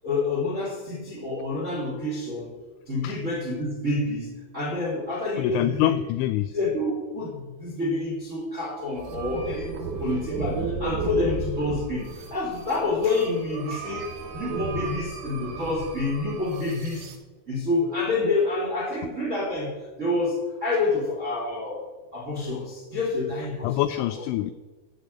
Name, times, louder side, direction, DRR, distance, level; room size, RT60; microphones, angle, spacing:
voice 1, 0.0-2.5 2.9-6.0 6.5-9.7 10.0-17.0 17.5-21.8 22.1-23.8 24.2-24.3, left 2 dB, 30° right, -4 dB, 1.4 m, -28 dB
voice 2, 5.4-6.5 23.6-24.5, left 14 dB, 85° left, 11 dB, 2.6 m, -25 dB
sound 1, 8.9-17.2, right 4 dB, 75° right, 3.7 m, -34 dB
13.0 x 5.3 x 7.6 m, 1.2 s
omnidirectional pair, 5.6 m